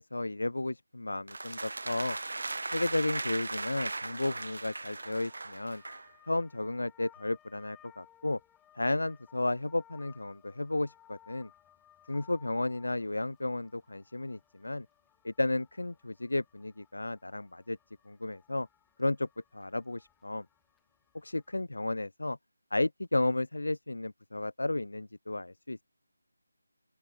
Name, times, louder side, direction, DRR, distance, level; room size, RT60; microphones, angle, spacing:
voice 1, 0.0-2.2 2.7-5.8 6.3-8.4 8.7-11.5 12.1-14.9 15.2-17.8 18.1-18.7 19.0-19.3 19.5-20.4 21.2-22.4 22.7-25.8, left 2 dB, 70° left, 1.1 m, -33 dB
sound 1, 1.3-6.1, right 3 dB, 60° right, 1.3 m, -38 dB
sound 2, 2.9-21.5, left 11 dB, 5° left, 7.8 m, -62 dB
open air
figure-of-eight pair, 160°, 0 cm